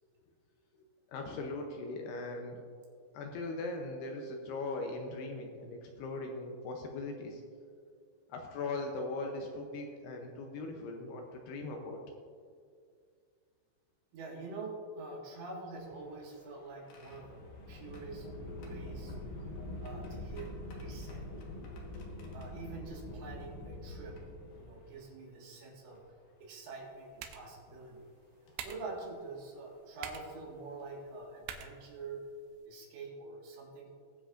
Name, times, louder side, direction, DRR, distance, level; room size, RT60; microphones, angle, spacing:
voice 1, 1.1-2.6 3.1-7.4 8.3-12.0, left 2 dB, 80° left, 2 dB, 2.4 m, -39 dB
voice 2, 14.1-17.4 17.7-18.3 18.7-19.2 19.8-20.5 20.8-21.2 22.3-24.2 24.5-26.0 26.4-28.0 28.6-32.2 32.7-33.9, right 3 dB, 70° right, -3 dB, 3.9 m, -45 dB
sound 1, 15.7-25.0 25.9-26.0 27.5-27.7 28.5-28.7 30.3-30.4 30.8-31.0, left 1 dB, 60° left, 2.3 m, -45 dB
sound 2, 26.7-32.7, right 8 dB, 90° right, 3.3 m, -50 dB
20.5 x 7.6 x 2.5 m, 2.1 s
omnidirectional pair, 5.4 m